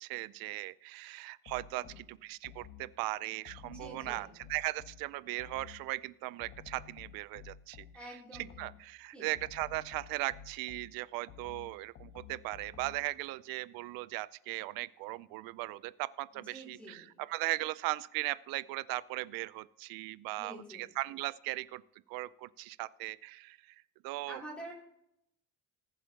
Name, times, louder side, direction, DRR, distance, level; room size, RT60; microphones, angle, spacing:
voice 1, 0.0-21.8 22.1-24.4, right 19 dB, 75° right, 18 dB, 0.5 m, -38 dB
sound 1, 1.4-3.0 3.4-5.9 6.4-8.9 9.3-13.1, left 8 dB, 50° left, 1.3 m, -53 dB
voice 2, 1.7-2.0 3.6-4.3 7.9-8.6 9.1-9.3 16.3-17.1 20.4-20.9 24.3-24.7, right 1 dB, 5° left, -3 dB, 2.9 m, -48 dB
19.5 x 7.5 x 2.8 m, 0.78 s
cardioid pair, 175°, 35 cm